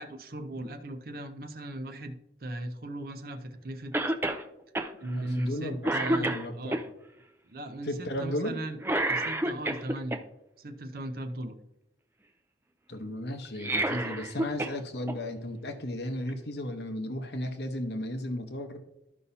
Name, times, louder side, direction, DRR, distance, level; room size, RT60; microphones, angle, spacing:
voice 1, 0.0-2.2 2.4-3.9 5.0-6.8 7.5-8.8 9.1-10.2 10.6-11.6, right 1 dB, 55° right, 7 dB, 0.7 m, -37 dB
Cough, 3.9-4.4 4.8-4.9 5.4-5.6 5.8-6.8 8.8-10.2 13.5-14.8 15.1-15.2 16.3-16.4, right 1 dB, 15° right, 0.5 m, -29 dB
voice 2, 5.0-6.8 7.8-8.6 12.9-18.8, left 1 dB, 70° left, 6 dB, 1.0 m, -35 dB
13.5 x 5.5 x 2.7 m, 0.86 s
head